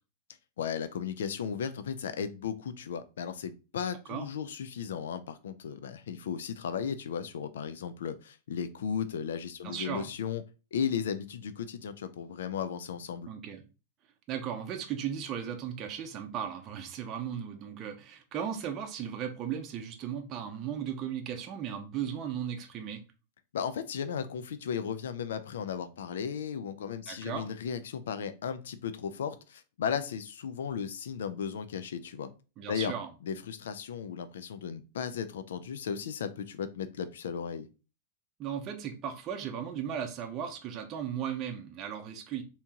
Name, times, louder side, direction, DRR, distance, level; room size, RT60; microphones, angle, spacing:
voice 1, 0.6-10.4 10.7-13.3 23.5-32.3 32.7-32.9 33.2-37.7, left 7 dB, 90° left, 0.3 m, -35 dB
voice 2, 9.6-10.1 13.3-13.6 14.3-23.0 27.1-27.5 32.6-33.1 38.4-42.4, right 8 dB, 30° right, 0.6 m, -36 dB
3.5 x 2.8 x 2.8 m
supercardioid pair, 145°, 0 cm